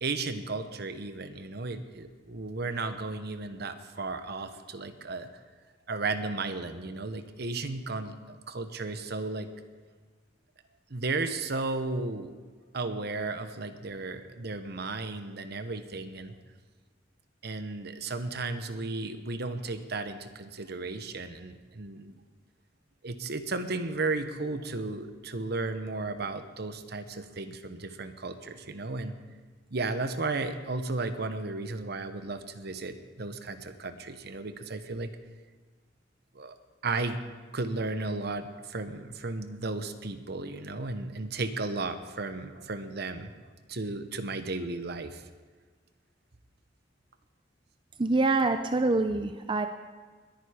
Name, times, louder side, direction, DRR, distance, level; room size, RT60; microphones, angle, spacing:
voice 1, 0.0-5.3 5.9-9.5 10.9-12.3 12.7-16.3 17.4-22.1 23.0-29.2 29.7-35.1 36.3-36.5 36.8-37.2 37.5-43.3 43.7-45.2, right 3 dB, 60° right, 10 dB, 1.0 m, -34 dB
voice 2, 48.0-49.7, right 3 dB, 25° right, 7 dB, 0.5 m, -25 dB
21.0 x 9.2 x 5.0 m, 1.5 s
head